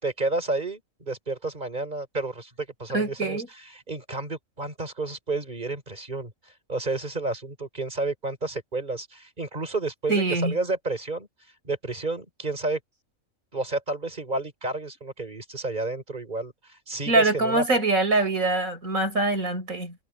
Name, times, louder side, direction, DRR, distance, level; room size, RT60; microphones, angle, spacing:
voice 1, 0.0-11.3 11.6-12.8 13.5-17.6, right 2 dB, 35° right, 4.4 m, -31 dB
voice 2, 2.9-3.5 10.1-10.6 17.1-19.9, right 2 dB, 90° right, 6.2 m, -23 dB
omnidirectional pair, 1.4 m